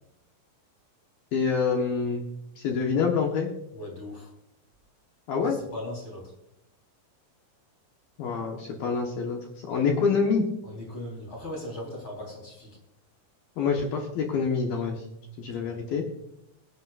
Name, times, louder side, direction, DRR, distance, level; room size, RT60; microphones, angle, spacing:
voice 1, 1.3-2.3 2.6-3.5 5.3-5.6 8.2-9.4 9.7-10.5 13.6-15.0 15.4-16.0, left 5 dB, 70° left, 0 dB, 2.3 m, -26 dB
voice 2, 3.7-4.3 5.4-6.3 10.6-12.8 15.6-15.8, left 1 dB, 25° left, -2 dB, 4.2 m, -39 dB
22.0 x 8.5 x 2.5 m, 0.81 s
omnidirectional pair, 5.8 m